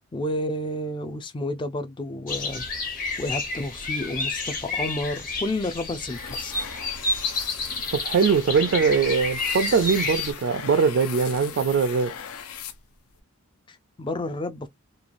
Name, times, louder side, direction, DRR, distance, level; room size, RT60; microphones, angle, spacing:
voice 1, 0.1-2.7 3.2-6.6 13.7-14.7, left 1 dB, 20° left, 0.3 m, -30 dB
sound 1, 2.3-10.3, left 3 dB, 40° left, 1.0 m, -30 dB
sound 2, 6.1-13.2, left 8 dB, 70° left, 0.5 m, -39 dB
voice 2, 7.9-12.1, right 5 dB, 55° right, 0.3 m, -22 dB
3.0 x 2.3 x 2.5 m
head